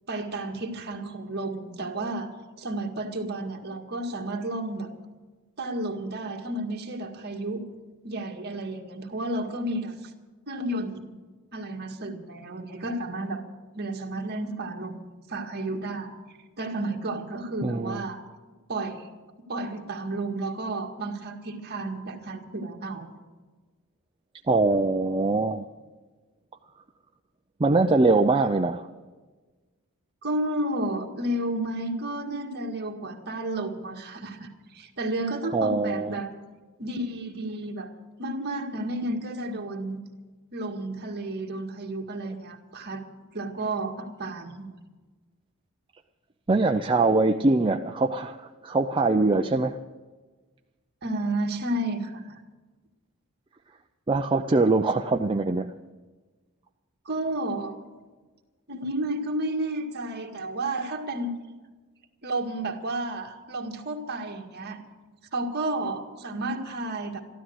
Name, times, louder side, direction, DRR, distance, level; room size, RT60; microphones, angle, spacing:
voice 1, 0.1-2.3 2.6-4.9 5.6-7.7 8.0-10.1 10.5-11.0 11.5-13.4 13.7-16.1 16.6-18.2 18.7-19.1 19.5-23.1 30.2-36.3 36.8-37.9 38.2-40.0 40.5-43.0 43.3-44.7 51.0-52.4 57.1-57.7 58.7-61.4 62.2-64.8 65.3-67.2, right 1 dB, 50° right, 2 dB, 1.9 m, -32 dB
voice 2, 17.6-18.0 24.5-25.7 27.6-28.9 35.5-36.2 46.5-49.8 54.1-55.7, right 3 dB, 25° right, 4 dB, 0.5 m, -23 dB
14.0 x 12.5 x 7.9 m, 1.3 s
head